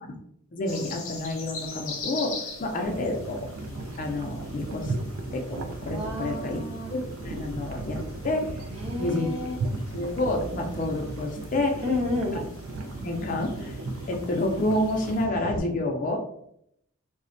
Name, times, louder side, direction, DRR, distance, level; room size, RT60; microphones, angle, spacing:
voice 1, 0.5-3.5 4.0-4.9 5.3-6.6 6.9-8.5 9.0-9.3 9.9-11.8 13.0-13.8 14.1-16.2, left 1 dB, 40° left, 2 dB, 0.4 m, -29 dB
sound 1, 0.7-15.2, left 4 dB, 80° left, 0.8 m, -44 dB
sound 2, 2.8-15.6, right 2 dB, 80° right, 0.4 m, -36 dB
voice 2, 5.9-6.9 8.7-9.6 11.8-12.4, left 2 dB, 30° right, -1 dB, 0.6 m, -31 dB
4.1 x 2.1 x 2.5 m, 0.73 s
head